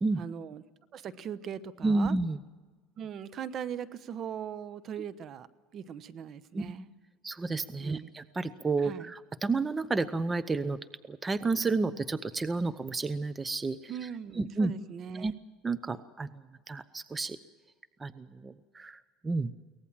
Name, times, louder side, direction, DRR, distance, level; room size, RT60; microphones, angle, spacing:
voice 1, 0.2-0.6 0.9-2.1 3.0-5.5 5.7-6.9 7.8-8.1 8.8-9.1 13.9-15.3, right 8 dB, 45° right, 14 dB, 1.1 m, -40 dB
voice 2, 1.8-2.4 6.5-6.7 7.2-10.8 11.1-14.1 14.3-14.7 15.1-15.3 15.6-16.4 16.7-17.4 18.0-19.5, right 3 dB, 20° right, 14 dB, 0.8 m, -31 dB
23.5 x 18.5 x 7.5 m, 1.4 s
supercardioid pair, 110°, 0 cm